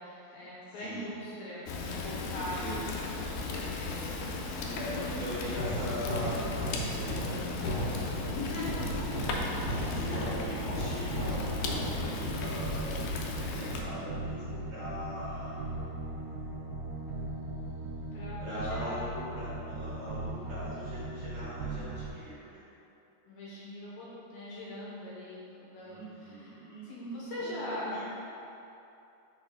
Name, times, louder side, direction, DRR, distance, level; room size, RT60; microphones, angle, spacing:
voice 1, 0.0-1.6 1.9-3.0 3.2-4.2 8.3-9.1 18.1-19.1 23.3-28.0, left 1 dB, 75° left, -7 dB, 2.5 m, -41 dB
voice 2, 0.8-1.2 2.6-2.8 4.6-8.0 8.2-8.5 9.1-15.5 18.4-22.6 25.8-28.0, equal, 60° right, -10 dB, 2.1 m, -41 dB
Fire, 1.7-13.8, left 3 dB, 90° left, 2.0 m, -36 dB
sound 1, 4.4-12.4, equal, 55° left, 2.5 m, -37 dB
sound 2, 8.8-22.1, right 2 dB, 90° right, 2.0 m, -38 dB
5.8 x 4.2 x 4.9 m, 2.8 s
omnidirectional pair, 4.8 m